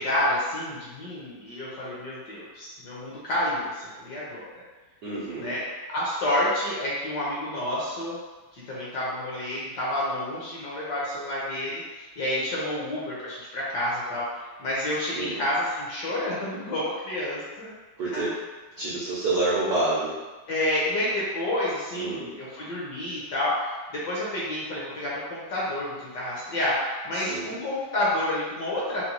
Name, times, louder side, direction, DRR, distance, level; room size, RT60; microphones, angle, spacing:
voice 1, 0.0-4.5 5.4-8.2 8.5-14.3 14.6-17.7 18.0-18.3 20.5-29.1, left 1 dB, 65° left, -7 dB, 1.1 m, -29 dB
voice 2, 5.0-5.5 15.1-15.4 18.0-18.3 18.8-20.1 22.0-22.3 27.3-27.5, right 2 dB, 70° right, -8 dB, 0.9 m, -28 dB
4.0 x 2.1 x 2.9 m, 1.2 s
omnidirectional pair, 2.4 m